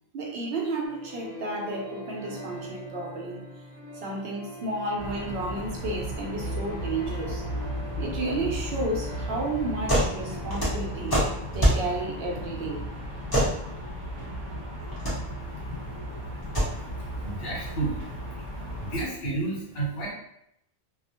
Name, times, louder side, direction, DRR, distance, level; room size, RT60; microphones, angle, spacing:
voice 1, 0.1-3.4 4.0-7.4 8.0-11.2 11.5-12.9 15.6-15.7, right 2 dB, 70° right, 0 dB, 0.8 m, -32 dB
sound 1, 0.8-11.4, equal, 30° right, 1.1 m, -42 dB
sound 2, 5.0-19.0, equal, 45° right, 1.0 m, -35 dB
sound 3, 9.9-10.1 10.4-11.8 13.3-13.5 14.8-15.1 16.4-16.7, equal, 25° left, 0.8 m, -23 dB
voice 2, 16.9-18.0 18.8-20.1, right 2 dB, 65° left, -5 dB, 1.1 m, -31 dB
2.3 x 2.0 x 2.8 m, 0.75 s
omnidirectional pair, 1.1 m